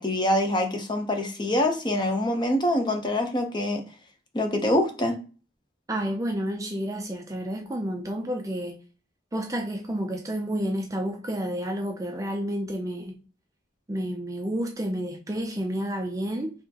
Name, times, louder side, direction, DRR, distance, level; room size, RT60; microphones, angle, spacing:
voice 1, 0.0-3.8 4.3-5.2, left 1 dB, 25° left, 0.7 m, -25 dB
voice 2, 5.9-8.8 9.3-13.2 13.9-16.5, equal, 20° right, 0.4 m, -30 dB
4.4 x 2.8 x 2.8 m
head